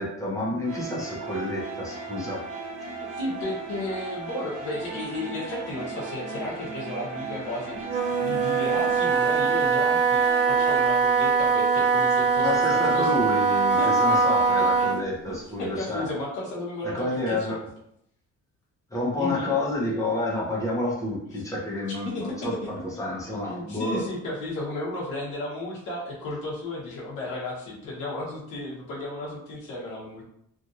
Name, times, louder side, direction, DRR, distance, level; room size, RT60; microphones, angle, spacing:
voice 1, 0.0-2.4 12.4-16.1 16.8-17.6 18.9-24.0, left 2 dB, 10° left, -4 dB, 0.9 m, -29 dB
sound 1, 0.6-10.8, right 4 dB, 75° right, 1.1 m, -37 dB
voice 2, 3.0-13.1 13.8-14.2 15.3-17.5 19.2-19.5 21.3-21.4 22.0-30.2, left 2 dB, 85° left, -6 dB, 1.1 m, -34 dB
Wind instrument woodwind instrument, 7.8-15.1, right 5 dB, 35° right, 0.5 m, -22 dB
3.1 x 2.5 x 2.6 m, 0.74 s
cardioid pair, 135°, 30 cm